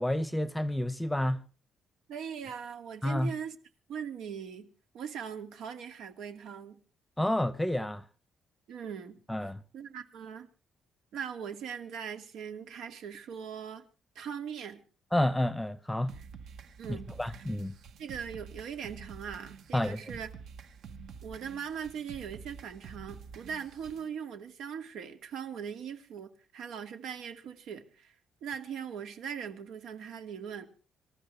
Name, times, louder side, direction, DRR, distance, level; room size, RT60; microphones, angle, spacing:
voice 1, 0.0-1.4 3.0-3.3 7.2-8.0 9.3-9.6 15.1-16.1 16.9-17.7 19.7-20.0, left 1 dB, 5° left, 0.8 m, -29 dB
voice 2, 2.1-3.6 3.9-4.7 4.9-6.8 8.7-9.2 9.7-10.5 11.1-13.8 14.2-14.8 16.8-17.4 18.0-20.3 21.2-28.1 28.4-30.7, right 7 dB, 90° right, 2.3 m, -40 dB
sound 1, 16.1-24.1, right 6 dB, 65° right, 1.3 m, -48 dB
26.5 x 13.5 x 3.3 m
cardioid pair, 150°, 0 cm